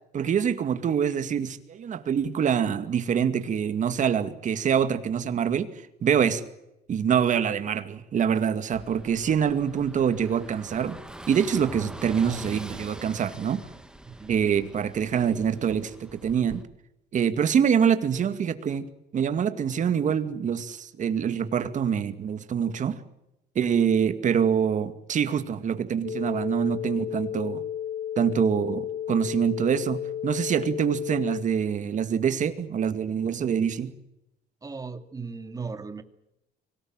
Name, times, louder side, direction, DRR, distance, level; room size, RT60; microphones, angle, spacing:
voice 1, 0.1-5.7 6.0-6.4 6.9-11.0 11.3-13.6 14.3-16.6 17.1-18.9 19.1-23.0 23.6-27.6 28.2-33.9, right 8 dB, 45° right, 10 dB, 2.3 m, -25 dB
Car passing by / Engine, 8.7-16.6, right 1 dB, 5° right, 2.0 m, -44 dB
sound 1, 26.0-31.4, left 10 dB, 60° left, 1.5 m, -33 dB
voice 2, 34.6-36.0, right 4 dB, 20° right, 9 dB, 2.3 m, -37 dB
24.5 x 19.0 x 9.0 m, 0.88 s
cardioid pair, 110°, 17 cm